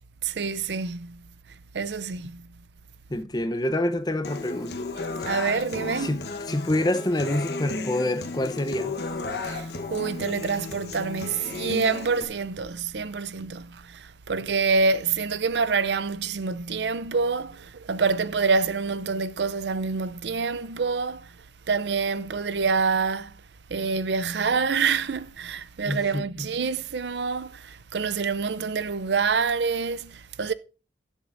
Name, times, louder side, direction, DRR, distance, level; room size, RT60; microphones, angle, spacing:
voice 1, 0.2-1.2 1.7-2.4 5.3-6.2 9.4-21.3 21.7-23.3 23.7-30.5, right 5 dB, 75° right, 0.6 m, -27 dB
voice 2, 3.1-4.8 5.2-5.3 6.0-6.2 6.5-9.0 25.9-26.5, left 1 dB, 25° left, 0.7 m, -27 dB
Human voice / Acoustic guitar, 4.2-12.2, left 3 dB, 65° left, 1.1 m, -34 dB
19.5 x 7.1 x 2.6 m
head